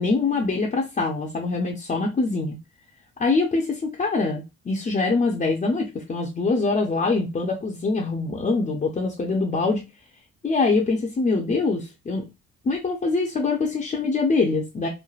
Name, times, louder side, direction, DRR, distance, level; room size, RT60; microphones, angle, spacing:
voice 1, 0.0-2.6 3.2-9.8 10.4-12.2 12.6-14.9, left 3 dB, 25° left, 0 dB, 0.5 m, -24 dB
3.2 x 2.1 x 2.3 m, 0.25 s
cardioid pair, 90°, 30 cm